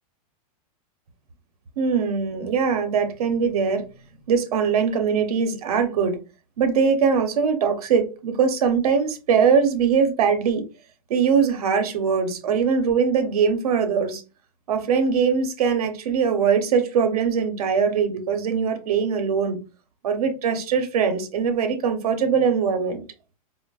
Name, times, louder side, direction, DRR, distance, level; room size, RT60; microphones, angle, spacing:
voice 1, 1.8-3.8 4.3-6.2 6.6-10.6 11.1-14.2 14.7-19.6 20.0-23.0, right 6 dB, 85° right, 0.7 m, -21 dB
4.5 x 2.0 x 2.3 m
supercardioid pair, 145°, 19 cm